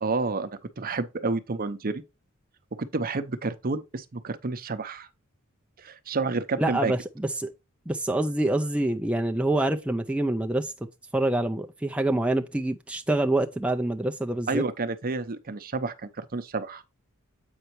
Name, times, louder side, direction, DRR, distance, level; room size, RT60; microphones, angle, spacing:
voice 1, 0.0-0.5 0.8-2.0 2.8-5.1 5.8-6.9 14.5-16.8, right 3 dB, 40° right, 0.7 m, -30 dB
voice 2, 6.6-7.5 7.9-10.7 11.1-14.6, right 1 dB, 5° right, 0.4 m, -26 dB
8.0 x 5.5 x 3.0 m
head